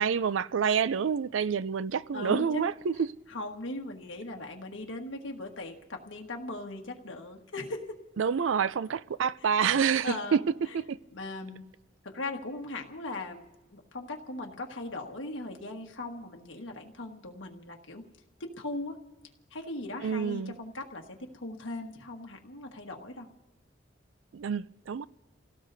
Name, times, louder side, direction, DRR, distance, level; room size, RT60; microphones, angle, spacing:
voice 1, 0.0-3.1 8.2-10.4 10.7-11.0 20.0-20.5 24.3-25.1, right 7 dB, 75° right, 0.4 m, -28 dB
voice 2, 2.1-2.6 3.3-8.0 9.8-10.4 11.1-11.6 12.0-13.4 13.7-18.0 18.4-19.0 19.5-23.3, left 2 dB, 75° left, 1.5 m, -39 dB
30.0 x 17.5 x 2.7 m
head